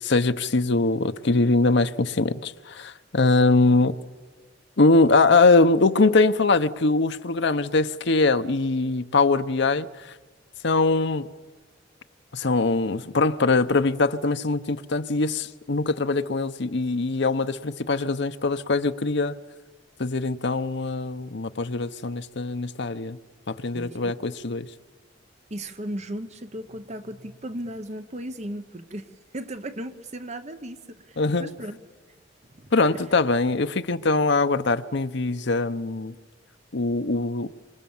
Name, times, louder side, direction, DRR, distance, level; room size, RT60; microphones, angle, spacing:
voice 1, 0.0-3.9 4.8-9.9 10.6-11.2 12.3-19.3 20.0-23.2 23.5-24.7 31.2-31.5 32.7-36.1 36.7-37.5, left 3 dB, 65° left, 0.9 m, -22 dB
voice 2, 23.7-24.2 25.5-29.1 29.3-31.8 32.5-33.2, right 1 dB, 35° right, 1.1 m, -36 dB
27.0 x 26.5 x 7.2 m
head